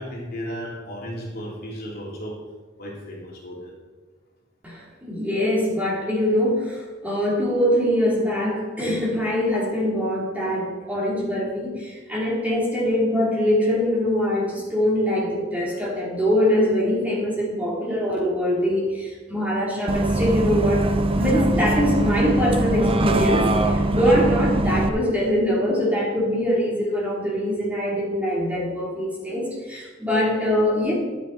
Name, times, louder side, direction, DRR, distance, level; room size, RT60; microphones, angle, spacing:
voice 1, 0.0-2.4 2.8-3.7, equal, 50° left, -3 dB, 2.8 m, -34 dB
voice 2, 4.6-20.9 21.2-30.9, equal, 10° right, -5 dB, 2.6 m, -23 dB
Bus, 19.9-24.9, right 1 dB, 30° right, 0.7 m, -22 dB
11.5 x 8.1 x 4.5 m, 1.3 s
head